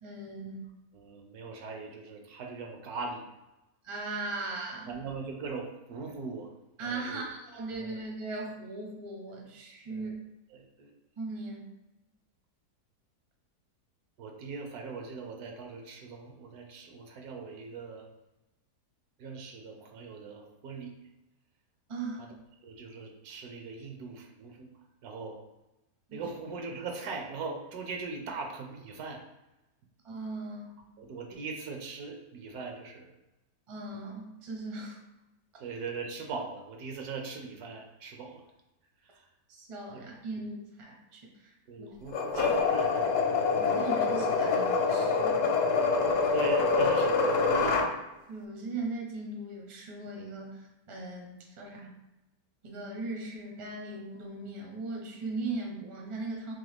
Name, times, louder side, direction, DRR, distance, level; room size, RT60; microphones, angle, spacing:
voice 1, 0.0-0.7 3.8-5.0 6.8-10.1 11.2-11.7 21.9-22.3 26.1-26.2 30.0-30.8 33.7-35.0 39.5-41.9 42.8-42.9 43.6-45.4 48.3-51.9 52.6-56.5, right 2 dB, 35° right, -1 dB, 0.5 m, -39 dB
voice 2, 0.9-3.3 4.9-6.5 6.8-7.2 7.7-7.9 9.9-10.1 10.5-10.9 14.2-18.1 19.2-20.9 22.6-24.7 25.0-25.4 26.1-29.2 31.0-33.1 35.6-38.4 39.1-39.2 39.9-40.0 41.7-43.1 46.3-47.8, right 4 dB, 75° right, 2 dB, 1.1 m, -40 dB
sound 1, 42.1-47.9, left 4 dB, 80° left, 1.1 m, -26 dB
3.8 x 3.0 x 3.4 m, 0.99 s
omnidirectional pair, 1.8 m